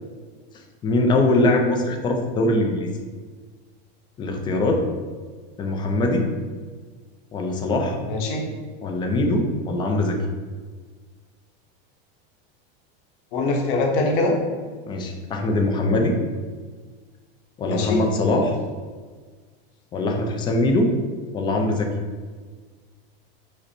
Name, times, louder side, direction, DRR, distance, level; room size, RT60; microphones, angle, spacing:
voice 1, 0.8-2.9 4.2-4.8 5.6-6.3 7.3-8.0 8.8-10.2 14.9-16.2 17.6-18.6 19.9-20.9 21.3-21.9, left 2 dB, 15° left, 2 dB, 0.3 m, -22 dB
voice 2, 8.1-8.4 13.3-14.3 17.6-18.0, left 2 dB, 60° left, 1 dB, 1.1 m, -23 dB
5.2 x 2.1 x 4.3 m, 1.5 s
supercardioid pair, 155°, 30 cm